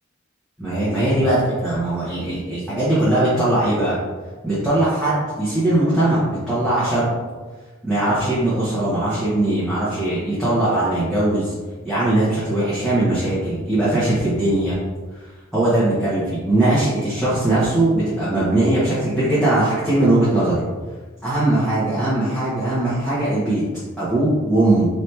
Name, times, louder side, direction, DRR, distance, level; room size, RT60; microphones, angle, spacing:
voice 1, 0.6-4.0 4.4-7.1 7.8-11.5 11.8-14.8 15.5-20.6 21.2-23.6 24.0-24.9, right 1 dB, ahead, -12 dB, 1.1 m, -20 dB
4.3 x 3.0 x 3.3 m, 1.3 s
head